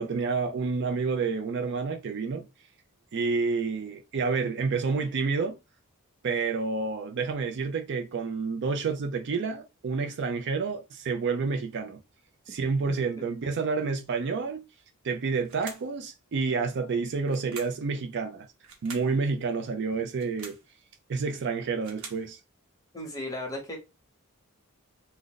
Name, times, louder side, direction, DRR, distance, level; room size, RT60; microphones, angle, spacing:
voice 1, 0.0-2.5 3.1-5.6 6.2-12.0 12.5-14.6 15.0-18.5 18.8-20.6 21.1-22.4, right 4 dB, 55° right, 0.4 m, -29 dB
voice 2, 12.9-13.2 22.9-23.8, left 1 dB, 15° left, 0.9 m, -36 dB
sound 1, 15.4-16.0 17.3-17.9 18.6-19.1 20.1-20.7 21.5-22.3, right 4 dB, 75° right, 0.9 m, -44 dB
2.4 x 2.1 x 3.8 m
head